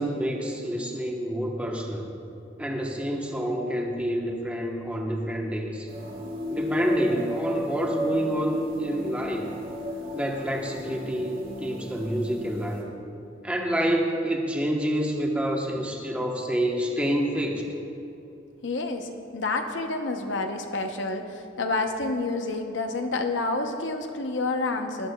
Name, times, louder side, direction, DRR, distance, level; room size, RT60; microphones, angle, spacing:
voice 1, 0.0-2.1 2.6-5.9 6.5-9.5 10.1-12.9 13.4-17.6, equal, 5° right, 0 dB, 1.0 m, -28 dB
sound 1, 5.9-12.8, equal, 50° right, 2.4 m, -34 dB
voice 2, 18.6-25.1, left 3 dB, 65° left, 4 dB, 0.8 m, -29 dB
17.5 x 11.0 x 2.3 m, 2.8 s
head